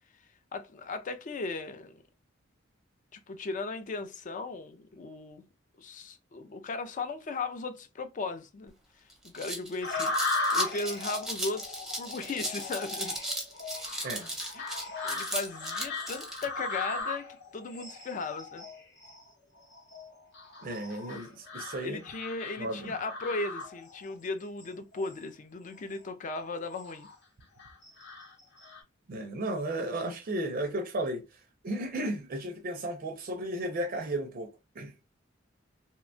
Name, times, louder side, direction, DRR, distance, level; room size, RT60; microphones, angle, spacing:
voice 1, 0.5-2.0 3.1-5.4 5.8-8.7 9.2-13.1 14.5-14.6 15.0-17.3 17.5-18.6 21.8-27.1, left 3 dB, 40° left, 0.4 m, -37 dB
sound 1, 8.7-8.8 9.1-16.5, right 1 dB, 5° right, 0.7 m, -37 dB
sound 2, 9.8-24.1 24.6-25.2 25.7-25.9 26.5-27.1 27.6-28.8, left 3 dB, 65° left, 0.9 m, -37 dB
voice 2, 20.6-22.0 22.6-22.9 29.1-34.5 34.8-34.9, right 1 dB, 45° right, 0.4 m, -34 dB
2.8 x 2.1 x 2.5 m
head